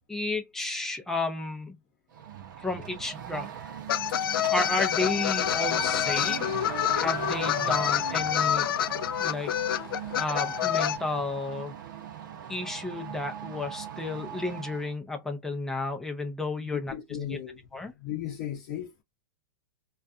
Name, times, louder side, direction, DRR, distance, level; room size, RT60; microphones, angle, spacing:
voice 1, 0.1-1.7 2.6-3.5 4.5-6.5 6.9-8.7 9.2-9.5 10.2-11.7 12.5-16.9 17.3-17.4 17.7-17.9, left 2 dB, 5° left, 0.4 m, -32 dB
sound 1, 2.1-14.9, right 8 dB, 60° right, 0.6 m, -39 dB
sound 2, 3.9-11.0, left 11 dB, 85° left, 0.4 m, -27 dB
voice 2, 16.9-17.6 18.0-19.0, left 11 dB, 40° left, 0.7 m, -36 dB
2.4 x 2.3 x 2.6 m
supercardioid pair, 170°, 12 cm